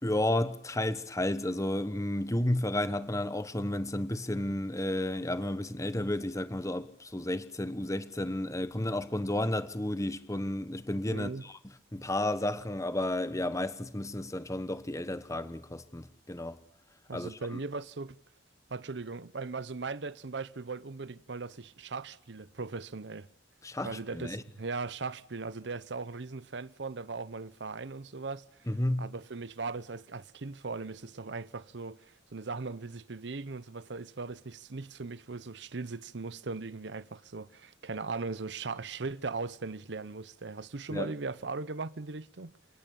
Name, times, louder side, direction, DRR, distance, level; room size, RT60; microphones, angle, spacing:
voice 1, 0.0-11.6 11.9-16.6 17.1-17.6 23.6-24.4 28.7-29.1 40.9-41.1, left 1 dB, 15° left, 1.2 m, -32 dB
voice 2, 11.1-11.4 17.1-18.2 18.7-23.3 23.8-28.7 29.0-42.5, right 4 dB, 70° right, 0.8 m, -39 dB
28.5 x 18.0 x 7.0 m
head